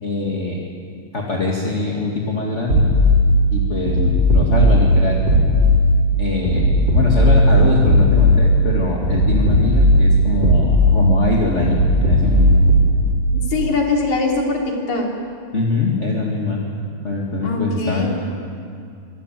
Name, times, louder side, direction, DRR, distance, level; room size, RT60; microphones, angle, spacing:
voice 1, 0.0-0.6 1.1-2.9 3.5-5.2 6.2-12.6 15.5-16.6 17.0-18.1, left 3 dB, 25° left, -2 dB, 1.7 m, -22 dB
sound 1, 2.7-3.3 3.9-4.9 5.3-5.9 6.4-8.5 9.0-10.1 10.4-11.1 11.6-13.0, left 1 dB, 30° right, 6.2 m, -15 dB
voice 2, 13.5-14.6 14.9-15.1 17.4-18.1, left 3 dB, 50° left, 0 dB, 4.4 m, -21 dB
24.0 x 19.0 x 9.2 m, 2.4 s
omnidirectional pair, 4.3 m